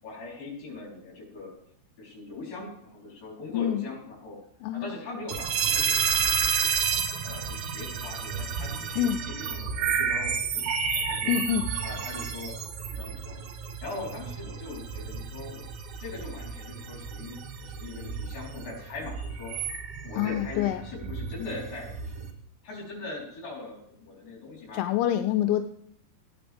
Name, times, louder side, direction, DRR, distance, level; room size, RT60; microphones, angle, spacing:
voice 1, 0.0-1.5 2.0-4.4 4.7-6.7 7.2-11.3 11.8-13.4 13.8-15.6 16.0-19.5 20.0-22.3 22.6-24.9, left 3 dB, 45° left, -4 dB, 5.5 m, -41 dB
voice 2, 3.5-3.8 4.6-4.9 9.0-9.2 11.3-11.7 20.2-20.8 24.7-25.6, left 11 dB, 85° left, 8 dB, 3.3 m, -26 dB
sound 1, 5.3-22.3, right 6 dB, 80° right, 4.0 m, -31 dB
16.0 x 9.8 x 3.6 m, 0.72 s
omnidirectional pair, 6.0 m